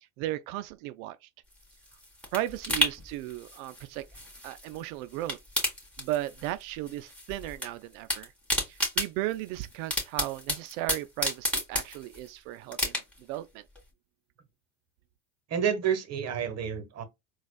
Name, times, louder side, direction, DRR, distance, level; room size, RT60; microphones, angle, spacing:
voice 1, 0.2-1.3 2.3-4.1 4.4-5.4 6.0-8.3 8.7-13.0 13.3-13.6, right 15 dB, 65° right, 0.5 m, -35 dB
sound 1, 1.5-4.8 5.1-6.6 6.9-7.7 7.9-12.3 12.7-13.3 13.7-13.8, equal, 5° left, 1.9 m, -32 dB
voice 2, 15.5-17.0, right 8 dB, 35° right, 1.0 m, -29 dB
4.0 x 2.4 x 2.3 m
hypercardioid pair, 90°, 46 cm